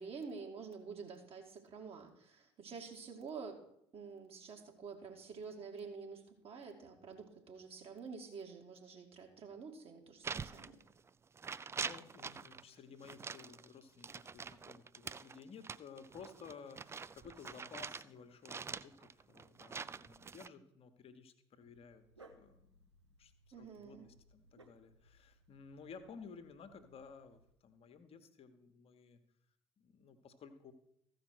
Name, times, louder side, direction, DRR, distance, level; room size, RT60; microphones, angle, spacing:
voice 1, 0.0-3.6 3.9-10.8 23.5-24.1, right 5 dB, 45° right, 2 dB, 2.0 m, -48 dB
sound 1, 10.2-11.1 11.4-12.6 13.0-18.1 18.5-20.5, right 5 dB, 20° right, 0.3 m, -45 dB
voice 2, 11.5-29.2 29.8-30.7, left 5 dB, 45° left, 8 dB, 1.2 m, -55 dB
Dog, 21.6-27.5, right 1 dB, 90° right, 0.7 m, -65 dB
14.5 x 5.0 x 6.3 m, 0.74 s
figure-of-eight pair, 55°, 14 cm